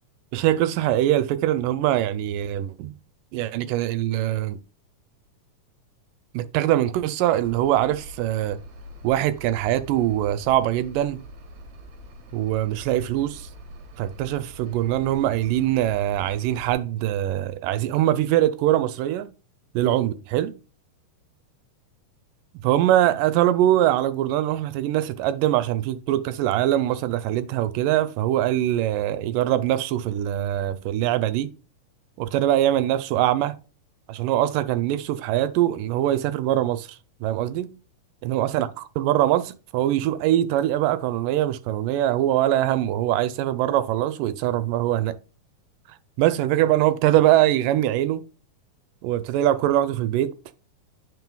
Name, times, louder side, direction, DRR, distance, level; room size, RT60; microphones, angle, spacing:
voice 1, 0.3-2.9 3.3-4.6 6.3-8.6 9.0-11.3 12.3-13.5 14.0-19.3 19.7-20.5 22.6-31.5 32.2-33.6 34.1-36.9 37.2-37.7 38.2-38.7 39.0-45.1 46.2-48.3 49.0-50.3, right 13 dB, 85° right, 2.2 m, -22 dB
sound 1, 7.4-16.7, equal, 65° right, 2.6 m, -44 dB
9.3 x 5.6 x 2.3 m
omnidirectional pair, 3.8 m